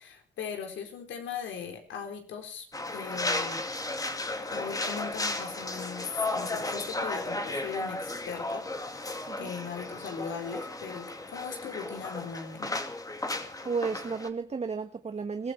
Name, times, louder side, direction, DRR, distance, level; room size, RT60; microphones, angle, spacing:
voice 1, 0.0-2.7 2.9-3.6 4.5-8.6 9.4-12.8, left 6 dB, 75° left, 4 dB, 4.2 m, -39 dB
sound 1, 2.7-14.3, left 2 dB, 15° left, 2.3 m, -34 dB
voice 2, 13.6-15.5, right 5 dB, 35° right, 7 dB, 1.4 m, -33 dB
22.0 x 14.5 x 4.4 m, 0.40 s
cardioid pair, 90°, 20 cm